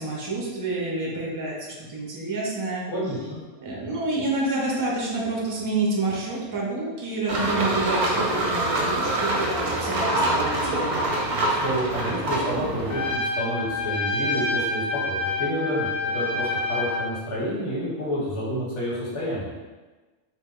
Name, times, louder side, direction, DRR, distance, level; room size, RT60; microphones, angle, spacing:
voice 1, 0.0-2.8 3.6-11.0, right 2 dB, 25° right, -4 dB, 0.4 m, -28 dB
voice 2, 2.9-3.4 11.4-19.5, equal, 90° left, -6 dB, 1.2 m, -29 dB
sound 1, 7.3-13.2, right 1 dB, 60° right, 0.7 m, -25 dB
Trumpet, 12.9-17.1, left 3 dB, 60° left, 0.5 m, -27 dB
2.9 x 2.1 x 3.6 m, 1.3 s
omnidirectional pair, 1.2 m